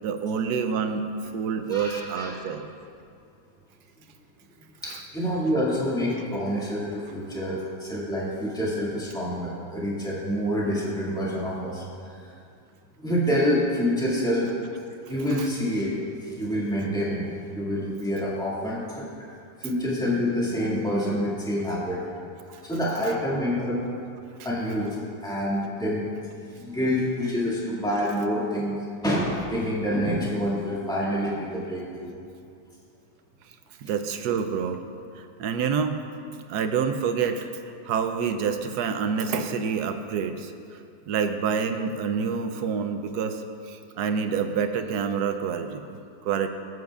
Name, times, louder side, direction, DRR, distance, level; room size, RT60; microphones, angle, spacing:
voice 1, 0.0-1.0 1.3-2.6 15.3-15.4 22.5-22.6 33.8-34.8 35.2-36.0 36.5-37.5 37.8-40.5 41.1-46.5, right 6 dB, 75° right, 7 dB, 1.1 m, -27 dB
voice 2, 1.7-2.3 4.8-12.3 13.0-14.5 15.1-19.1 19.6-22.0 22.6-23.8 24.4-26.1 26.6-32.2 33.9-34.0, equal, ahead, -7 dB, 2.0 m, -27 dB
18.0 x 7.9 x 2.4 m, 2.4 s
omnidirectional pair, 1.8 m